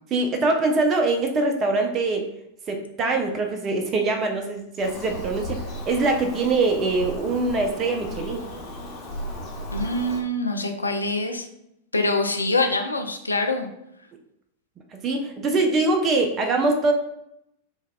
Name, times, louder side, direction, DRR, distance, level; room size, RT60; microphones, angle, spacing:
voice 1, 0.1-2.3 2.7-8.4 14.9-16.9, right 3 dB, 30° right, 3 dB, 0.4 m, -23 dB
Bird vocalization bird call bird song, 4.8-10.2, equal, 35° left, 0.9 m, -35 dB
voice 2, 9.7-11.5 11.9-13.7, left 2 dB, 80° left, 4 dB, 0.3 m, -24 dB
3.2 x 2.1 x 2.2 m, 0.80 s
figure-of-eight pair, 90°, 0 cm